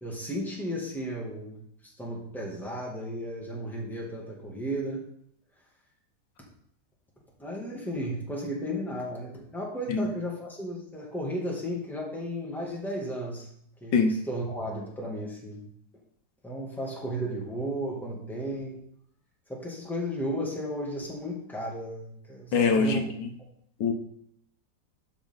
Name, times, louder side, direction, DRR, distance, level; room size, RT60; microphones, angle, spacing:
voice 1, 0.0-5.0 7.4-13.5 13.8-15.7 16.4-18.8 19.5-23.1, equal, ahead, -3 dB, 2.0 m, -34 dB
voice 2, 22.5-23.3 23.8-23.9, left 4 dB, 80° left, 4 dB, 1.6 m, -23 dB
12.0 x 5.0 x 3.8 m, 0.69 s
omnidirectional pair, 1.9 m